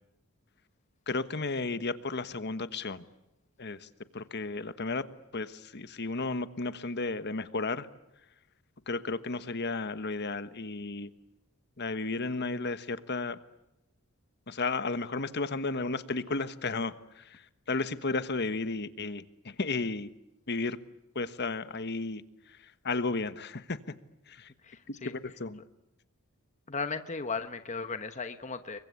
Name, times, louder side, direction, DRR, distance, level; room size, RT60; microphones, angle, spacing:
voice 1, 1.1-3.0 3.6-5.1 5.3-7.9 8.9-11.1 11.8-13.4 14.5-20.1 20.5-20.8 21.1-23.8 24.3-24.5 24.9-25.6, left 3 dB, 50° left, 12 dB, 1.3 m, -33 dB
voice 2, 24.6-25.1 26.7-28.8, left 4 dB, 35° left, 9 dB, 1.1 m, -36 dB
30.0 x 23.5 x 8.5 m, 0.90 s
head